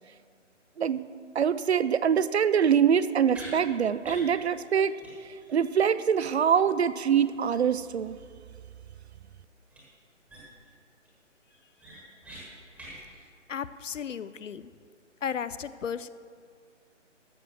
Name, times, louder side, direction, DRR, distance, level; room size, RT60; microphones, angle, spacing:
voice 1, 1.3-5.0 5.2-8.2, right 8 dB, 60° right, 15 dB, 0.5 m, -24 dB
sound 1, 3.3-3.5 4.0-4.3 4.6-4.7 5.0-5.1 5.4-5.5 9.7-9.8 10.3-10.7 11.1-11.2 11.5-12.4 12.7-13.0, right 1 dB, 5° right, 1.3 m, -45 dB
voice 2, 13.5-14.7 15.2-16.1, left 7 dB, 75° left, 15 dB, 0.6 m, -34 dB
13.5 x 6.7 x 6.1 m, 2.1 s
figure-of-eight pair, 150°, 38 cm